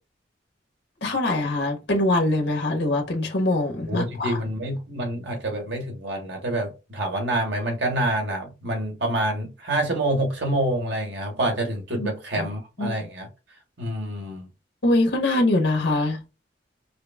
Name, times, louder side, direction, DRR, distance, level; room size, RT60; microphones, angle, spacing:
voice 1, 1.0-4.4 12.0-12.1 12.4-12.5 12.8-12.9 14.8-16.2, left 2 dB, 70° left, 1.3 m, -23 dB
voice 2, 3.9-13.3 13.8-14.5, right 1 dB, 75° right, 1.6 m, -27 dB
4.9 x 2.1 x 3.5 m
head